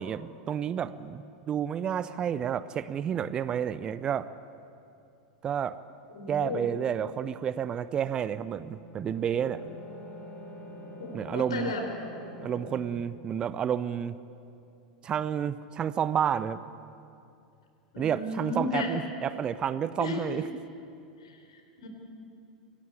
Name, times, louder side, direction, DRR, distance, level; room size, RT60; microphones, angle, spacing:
voice 1, 0.0-4.3 5.4-5.8 6.3-9.7 11.1-11.7 12.4-14.2 15.0-16.6 18.0-20.4, right 8 dB, 25° right, 16 dB, 0.7 m, -30 dB
voice 2, 6.1-6.7 11.0-11.8 17.9-18.9 20.0-20.4 21.2-21.9, left 3 dB, 65° left, 4 dB, 4.6 m, -34 dB
sound 1, 8.4-12.8, equal, 30° left, 4.2 m, -45 dB
26.5 x 18.0 x 8.5 m, 2.6 s
figure-of-eight pair, 85°, 3 cm